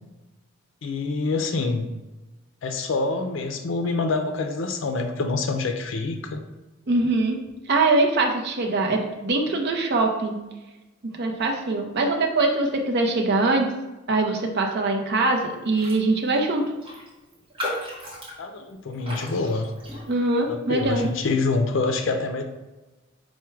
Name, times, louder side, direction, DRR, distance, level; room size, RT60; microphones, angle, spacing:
voice 1, 0.8-1.9 2.6-6.4 18.4-19.7 20.5-22.4, left 3 dB, 70° left, 5 dB, 0.4 m, -26 dB
voice 2, 6.9-7.4 7.7-10.4 11.2-13.7 14.1-16.6 20.1-21.1, right 2 dB, 55° right, 2 dB, 0.6 m, -22 dB
Raindrop, 15.7-16.1 16.3-16.4 16.8-20.4 20.8-21.1, left 1 dB, 25° right, 1.0 m, -36 dB
4.6 x 2.1 x 4.4 m, 1.1 s
head